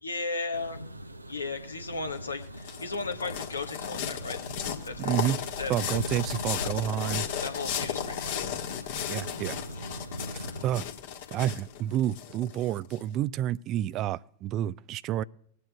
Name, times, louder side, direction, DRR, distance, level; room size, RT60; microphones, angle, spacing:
voice 1, 0.0-0.8 1.3-4.4 4.6-5.1 5.6-5.7 7.4-8.5, left 3 dB, 80° left, 1.3 m, -35 dB
sound 1, 0.5-10.7, equal, 85° right, 0.6 m, -41 dB
sound 2, 2.2-13.0, left 9 dB, 55° left, 1.5 m, -35 dB
voice 2, 5.0-5.4 5.7-7.3 9.1-9.6 10.3-10.9 11.3-15.2, right 12 dB, 35° right, 0.3 m, -29 dB
21.0 x 9.6 x 2.3 m
figure-of-eight pair, 90°, 0 cm